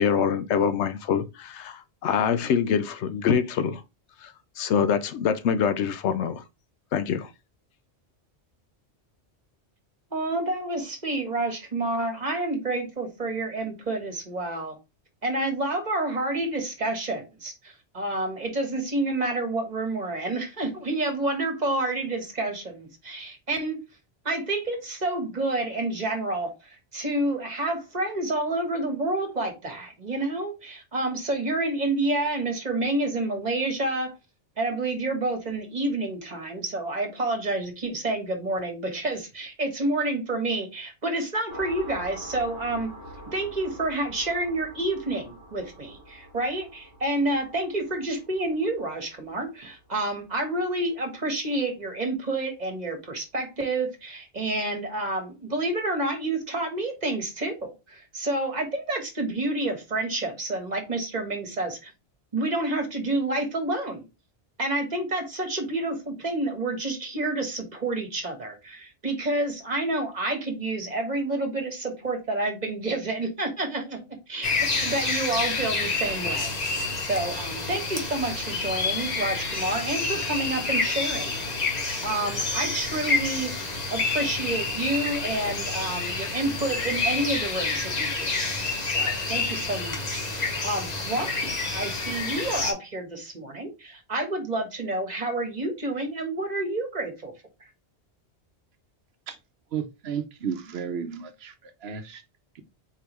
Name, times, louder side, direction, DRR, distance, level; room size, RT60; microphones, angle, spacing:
voice 1, 0.0-3.8 4.2-6.4 6.9-7.3, left 7 dB, 80° left, 0.9 m, -25 dB
voice 2, 10.1-14.8 15.2-23.8 24.2-34.1 34.6-42.9 43.3-61.9 62.3-64.1 64.6-81.4 81.8-83.5 83.9-97.3, right 2 dB, 40° right, 1.3 m, -29 dB
sound 1, 41.5-50.7, right 1 dB, 55° left, 2.0 m, -46 dB
sound 2, 74.4-92.7, left 3 dB, 40° left, 1.0 m, -28 dB
voice 3, 99.7-101.5 101.8-102.2, right 7 dB, 70° right, 0.8 m, -33 dB
4.5 x 3.5 x 3.0 m
omnidirectional pair, 1.2 m